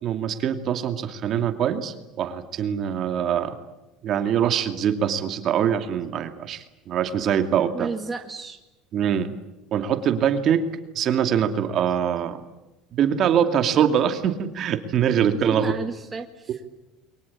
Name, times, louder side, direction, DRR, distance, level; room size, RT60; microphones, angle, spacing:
voice 1, 0.0-3.6 4.0-7.9 8.9-9.3 9.7-10.7 10.9-12.4 12.9-15.7, right 8 dB, 45° right, 8 dB, 2.5 m, -23 dB
voice 2, 7.7-8.6 15.4-16.7, right 4 dB, 20° right, 5 dB, 1.9 m, -32 dB
29.5 x 23.0 x 8.6 m, 0.99 s
supercardioid pair, 125°, 0 cm